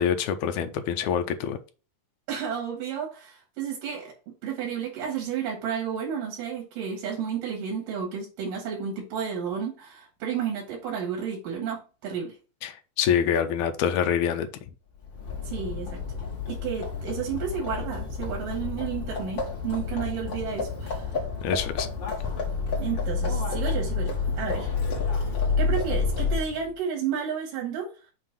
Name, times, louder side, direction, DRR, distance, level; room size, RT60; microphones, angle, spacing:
voice 1, 0.0-1.6 12.6-14.5 21.4-21.9, left 8 dB, 75° left, 1.9 m, -25 dB
voice 2, 2.3-12.3 15.4-16.0 16.5-21.1 22.8-24.7 25.6-27.9, right 7 dB, 85° right, 3.2 m, -32 dB
Livestock farm animals working animals, 15.0-26.7, left 4 dB, 45° left, 2.1 m, -29 dB
7.4 x 3.0 x 6.1 m
omnidirectional pair, 3.7 m